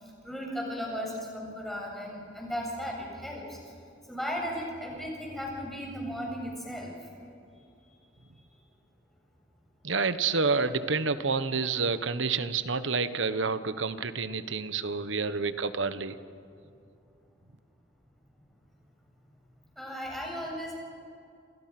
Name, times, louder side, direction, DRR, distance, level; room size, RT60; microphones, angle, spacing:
voice 1, 0.2-3.6 4.1-6.9 19.8-20.7, equal, ahead, -3 dB, 7.8 m, -36 dB
voice 2, 9.8-16.2, right 4 dB, 80° right, 12 dB, 1.3 m, -29 dB
29.0 x 28.0 x 6.1 m, 2.5 s
head